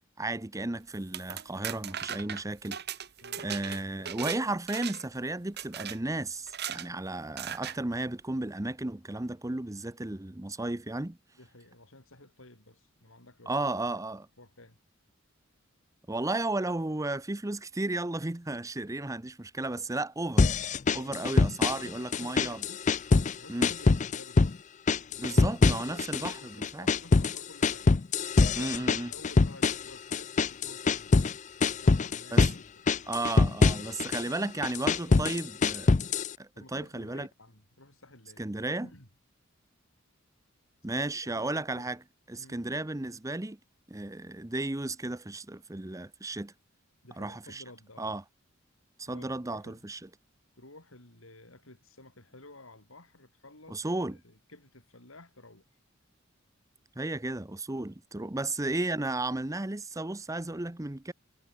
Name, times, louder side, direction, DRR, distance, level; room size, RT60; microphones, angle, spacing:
voice 1, 0.2-2.8 3.4-11.2 13.5-14.3 16.1-20.5 20.9-22.6 23.5-23.7 25.2-26.9 28.6-29.1 32.3-32.5 33.1-35.9 36.4-37.3 38.4-38.9 40.8-42.0 42.3-43.6 43.9-46.5 47.2-47.6 48.0-48.2 49.0-50.0 53.7-54.2 57.0-61.1, right 2 dB, 15° right, 0.8 m, -34 dB
sound 1, 0.9-4.4 4.7-5.2 5.6-6.0 6.5-6.9 7.4-7.8, right 9 dB, 55° right, 2.3 m, -38 dB
voice 2, 3.2-3.5 11.3-14.0 14.4-14.8 20.9-21.2 21.6-22.9 23.4-24.6 25.1-28.0 28.6-32.9 34.1-34.5 35.0-35.6 36.5-38.5 38.8-39.1 40.9-41.9 42.4-42.6 47.0-48.1 49.1-49.9 50.6-55.6 58.4-58.5, left 2 dB, 85° left, 7.7 m, -53 dB
sound 2, 20.4-21.9 22.1-23.4 23.6-24.6 24.9-26.3 26.6-31.3 31.6-32.6 32.9-34.2 34.6-36.3, left 3 dB, 35° left, 0.5 m, -24 dB
head